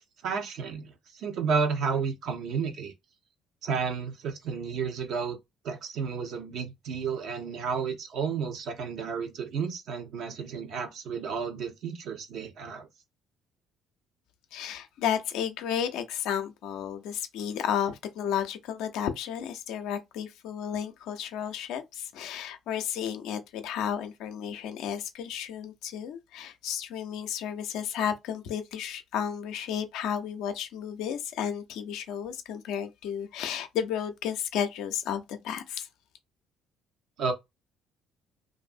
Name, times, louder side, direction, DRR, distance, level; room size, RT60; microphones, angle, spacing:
voice 1, 0.0-2.9 3.6-5.4 5.6-12.9 37.2-37.3, right 5 dB, 65° right, 0.8 m, -32 dB
voice 2, 14.5-35.9, left 9 dB, 70° left, 0.5 m, -33 dB
2.6 x 2.5 x 2.4 m
hypercardioid pair, 55°, 0 cm